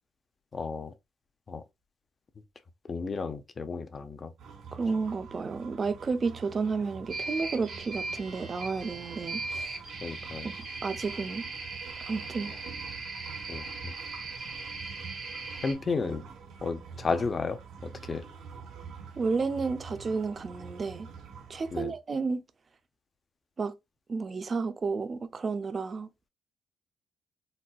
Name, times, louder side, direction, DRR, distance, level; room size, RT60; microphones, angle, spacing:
voice 1, 0.5-0.9 1.5-1.6 2.9-4.3 10.0-10.5 13.5-13.9 15.6-16.2 16.6-18.2 21.7-21.9, left 4 dB, 35° left, 0.5 m, -33 dB
sound 1, 4.4-21.8, right 5 dB, 80° right, 0.7 m, -46 dB
voice 2, 4.7-9.8 10.4-11.4 12.0-12.6 19.2-21.1 21.5-22.4 23.6-23.7 24.1-26.1, right 4 dB, 40° right, 0.4 m, -32 dB
sound 2, 7.1-15.7, right 3 dB, 55° right, 1.0 m, -39 dB
4.1 x 2.2 x 2.2 m
cardioid pair, 90°, 0 cm